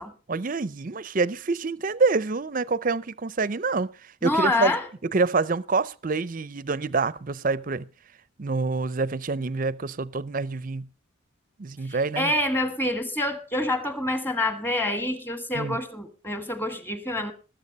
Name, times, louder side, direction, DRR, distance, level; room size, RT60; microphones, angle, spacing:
voice 1, 0.3-4.7 5.1-7.9 8.4-10.9 11.6-12.3 15.5-15.8, right 4 dB, 40° right, 0.5 m, -26 dB
voice 2, 4.2-4.9 11.9-17.3, left 1 dB, 10° left, 1.4 m, -27 dB
20.0 x 7.7 x 5.3 m
head